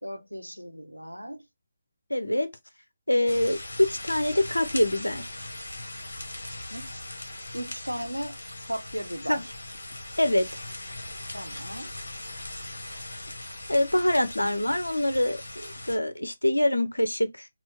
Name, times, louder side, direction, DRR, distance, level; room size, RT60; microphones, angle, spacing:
voice 1, 0.0-1.5 6.7-6.9 7.5-8.4 8.7-9.5 11.3-11.9, equal, 90° right, 0.7 m, -36 dB
voice 2, 2.1-2.5 3.1-5.3 9.3-9.4 10.2-10.5 13.7-17.5, left 1 dB, 80° left, 0.7 m, -25 dB
sound 1, 3.3-16.0, left 1 dB, 65° left, 1.0 m, -39 dB
4.3 x 2.0 x 4.1 m
figure-of-eight pair, 145°, 0 cm